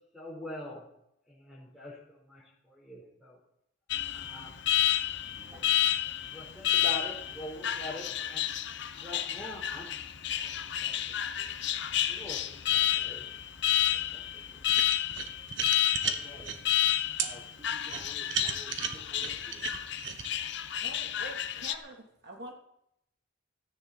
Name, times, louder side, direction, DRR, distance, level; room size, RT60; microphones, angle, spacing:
voice 1, 0.1-0.9 1.3-3.4 4.1-4.7 5.3-5.7 6.2-8.4 8.9-9.9 10.2-10.5 10.8-13.3 13.9-14.6, left 1 dB, ahead, -4 dB, 4.1 m, -44 dB
Alarm, 3.9-21.7, left 12 dB, 65° left, 0.9 m, -31 dB
voice 2, 5.3-5.8 16.0-16.6 17.2-19.8, equal, 25° right, -2 dB, 3.9 m, -51 dB
sound 1, 14.7-16.6 17.2-17.3 17.9-20.3, right 6 dB, 75° right, 1.4 m, -34 dB
voice 3, 20.8-22.0 22.2-22.5, right 1 dB, 60° right, 0 dB, 3.1 m, -44 dB
16.0 x 14.0 x 4.3 m, 0.78 s
head